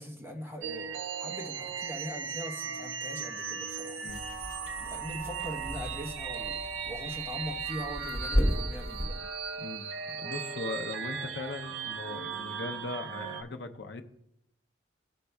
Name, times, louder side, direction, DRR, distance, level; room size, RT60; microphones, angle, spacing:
voice 1, 0.0-4.0 4.8-9.3, equal, 10° right, 0 dB, 0.9 m, -41 dB
sound 1, 0.6-13.4, right 6 dB, 80° right, 0.5 m, -37 dB
sound 2, 4.1-9.1, equal, 40° left, 1.5 m, -34 dB
voice 2, 9.6-14.0, left 3 dB, 60° left, 6 dB, 0.6 m, -39 dB
14.0 x 5.2 x 2.3 m, 0.77 s
head